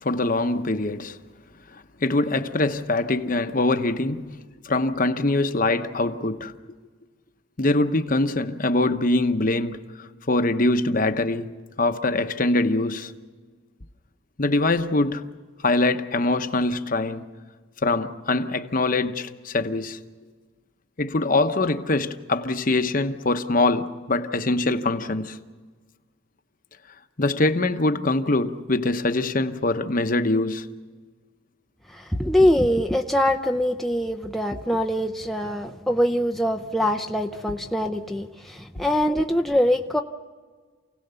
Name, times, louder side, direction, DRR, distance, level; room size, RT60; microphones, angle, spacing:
voice 1, 0.0-1.2 1.7-6.5 7.6-13.1 14.4-15.3 15.6-17.2 17.8-20.0 21.0-25.4 27.2-30.7, left 2 dB, 40° left, 0.9 m, -23 dB
voice 2, 31.9-40.0, equal, ahead, 0.6 m, -23 dB
28.5 x 17.5 x 6.9 m
head